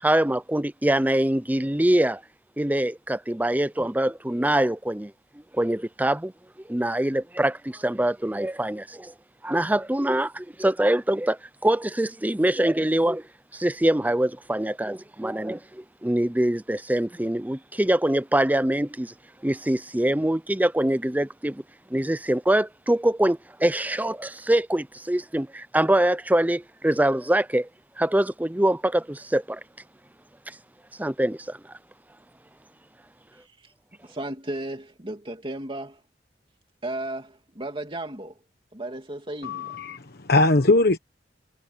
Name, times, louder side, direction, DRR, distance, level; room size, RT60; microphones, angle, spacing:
voice 1, 0.0-2.2 2.6-5.1 5.5-6.3 6.7-9.1 9.4-13.2 13.5-19.1 19.4-21.6 21.9-27.7 28.0-29.6 30.5-30.6 31.0-31.6, right 1 dB, 10° right, 0.6 m, -24 dB
voice 2, 33.3-33.7 34.0-36.0 36.8-38.4 38.7-39.8, right 1 dB, 30° right, 2.7 m, -35 dB
voice 3, 39.4-41.0, left 2 dB, 60° left, 1.2 m, -20 dB
head